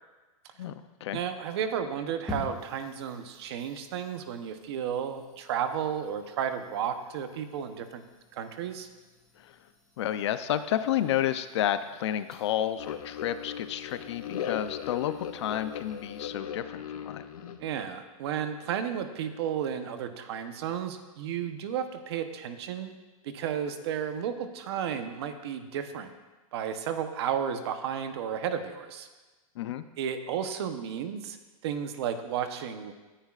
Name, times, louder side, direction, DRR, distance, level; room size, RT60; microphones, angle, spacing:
voice 1, 0.6-1.2 9.4-9.5 10.0-17.2 29.6-29.8, left 11 dB, 50° left, 11 dB, 0.6 m, -31 dB
voice 2, 1.1-8.0 8.3-8.9 17.6-23.0 23.2-26.1 26.5-29.1 30.0-31.4 31.6-32.9, right 8 dB, 45° right, 8 dB, 0.9 m, -33 dB
sound 1, 2.3-16.3, left 1 dB, 5° left, 1.8 m, -49 dB
sound 2, 12.8-17.8, left 9 dB, 85° left, 1.2 m, -38 dB
19.0 x 10.0 x 2.4 m, 1.2 s
supercardioid pair, 170°, 18 cm